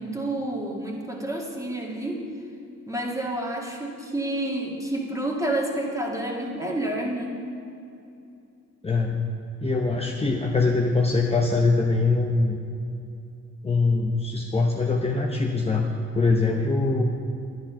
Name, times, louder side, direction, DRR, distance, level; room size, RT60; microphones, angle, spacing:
voice 1, 0.0-2.3 2.9-7.4, right 1 dB, 10° right, -1 dB, 2.2 m, -29 dB
voice 2, 8.8-9.2 9.6-12.6 13.6-15.9 16.1-17.0, left 3 dB, 20° left, 0 dB, 0.9 m, -23 dB
11.0 x 10.0 x 5.8 m, 2.6 s
cardioid pair, 90°, 30 cm